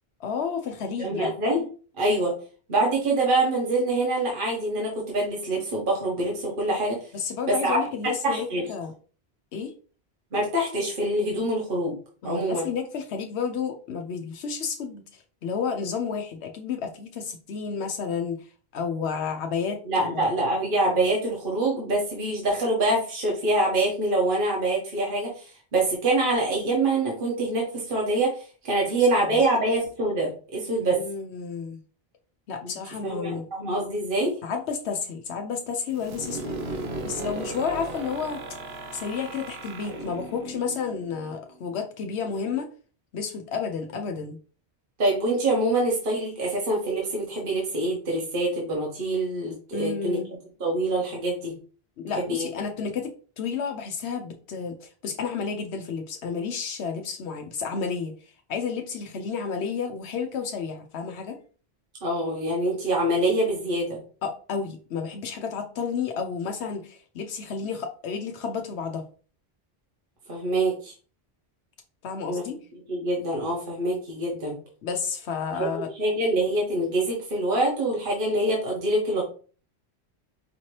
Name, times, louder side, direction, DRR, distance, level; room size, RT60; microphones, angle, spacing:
voice 1, 0.2-1.3 7.1-8.9 9.5-9.7 12.2-18.4 18.7-20.3 28.8-29.2 30.8-31.8 32.5-33.5 34.4-36.6 37.0-38.4 38.9-42.7 43.1-44.4 49.7-50.3 52.0-53.1 53.4-58.1 58.5-61.4 64.2-69.0 72.0-72.6 74.8-75.9, left 6 dB, 85° left, 4 dB, 0.9 m, -31 dB
voice 2, 1.0-1.6 2.0-2.3 2.7-7.0 7.5-7.8 8.0-8.7 10.3-11.9 12.2-12.7 19.9-31.0 32.6-32.7 33.0-34.3 45.0-50.2 50.6-51.5 52.2-52.5 62.0-64.0 70.3-70.9 72.3-72.4 72.9-74.6 75.6-79.2, right 2 dB, 55° right, -2 dB, 1.3 m, -25 dB
sound 1, 35.9-41.6, right 2 dB, 75° right, 1.0 m, -36 dB
5.1 x 2.8 x 3.1 m, 0.39 s
omnidirectional pair, 1.1 m